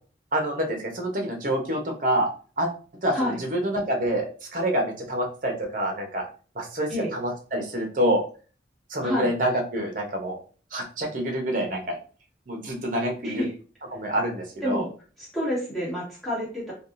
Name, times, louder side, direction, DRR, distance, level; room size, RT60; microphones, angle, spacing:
voice 1, 0.3-2.3 2.6-2.7 3.0-6.3 6.5-8.2 8.9-10.4 10.7-12.0 12.5-13.4 13.9-14.8, right 1 dB, 45° right, 2 dB, 0.7 m, -27 dB
voice 2, 15.2-16.7, left 1 dB, ahead, -8 dB, 1.5 m, -28 dB
3.5 x 2.3 x 2.5 m, 0.38 s
head